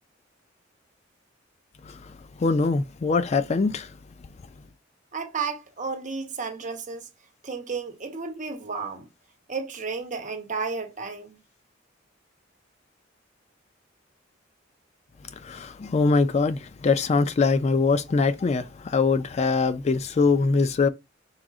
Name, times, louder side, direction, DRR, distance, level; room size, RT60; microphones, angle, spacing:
voice 1, 1.8-3.9 15.3-20.9, left 4 dB, 35° left, 0.3 m, -23 dB
voice 2, 5.1-7.1 7.4-9.1 9.5-11.4, right 4 dB, 40° right, 0.9 m, -32 dB
4.7 x 3.7 x 2.4 m
head